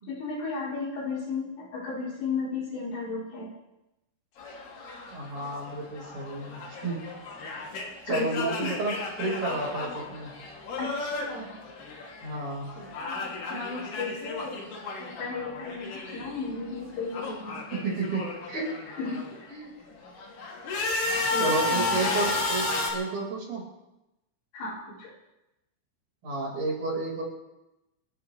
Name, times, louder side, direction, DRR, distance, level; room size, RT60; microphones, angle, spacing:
voice 1, 0.1-3.5 8.1-8.7 10.8-11.6 12.8-14.6 15.0-17.6 19.0-19.3 21.3-22.4 24.5-25.1, left 4 dB, 85° left, -4 dB, 6.8 m, -34 dB
sound 1, 4.4-12.4 12.7-16.4 16.7-19.4 19.9-22.9, left 3 dB, 60° left, 4.7 m, -33 dB
voice 2, 5.1-7.1 8.1-10.3 12.2-12.7 17.7-18.2 18.5-18.7 19.5-19.7 21.4-23.6 26.2-27.2, right 3 dB, 50° right, -2 dB, 6.8 m, -31 dB
29.5 x 14.0 x 3.4 m, 0.94 s
omnidirectional pair, 5.5 m